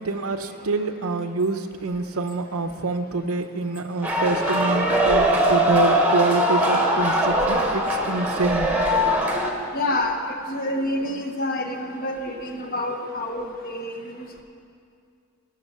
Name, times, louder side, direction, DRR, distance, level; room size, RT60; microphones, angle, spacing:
voice 1, 0.0-8.7, right 3 dB, 85° right, 9 dB, 0.7 m, -26 dB
sound 1, 4.0-9.5, equal, 5° right, 1.1 m, -21 dB
voice 2, 9.7-10.2 10.5-14.1, left 1 dB, 40° left, 4 dB, 1.0 m, -28 dB
17.0 x 6.1 x 7.3 m, 2.4 s
head